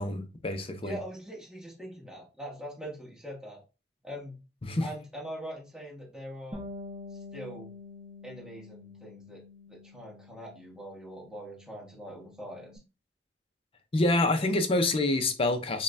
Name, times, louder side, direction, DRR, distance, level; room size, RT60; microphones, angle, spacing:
voice 1, 0.0-1.0 4.6-4.9 13.9-15.8, left 2 dB, 35° left, 0.5 m, -27 dB
voice 2, 0.8-3.6 4.0-4.4 4.8-6.6 7.3-7.7 8.2-9.4 9.7-12.7, equal, 5° right, 1.3 m, -42 dB
Bass guitar, 6.5-12.8, left 3 dB, 35° right, 0.7 m, -47 dB
5.3 x 2.2 x 2.5 m
head